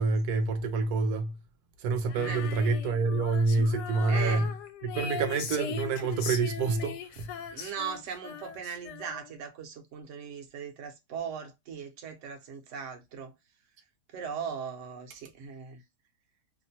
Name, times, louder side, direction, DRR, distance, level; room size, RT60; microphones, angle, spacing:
voice 1, 0.0-1.3 1.8-4.5 4.8-7.3, right 3 dB, 75° right, 1.1 m, -27 dB
Female singing, 2.1-9.4, left 8 dB, 75° left, 1.1 m, -39 dB
voice 2, 4.1-4.5 7.5-13.3 14.1-15.8, right 7 dB, 55° right, 0.9 m, -39 dB
2.9 x 2.1 x 2.6 m
omnidirectional pair, 1.8 m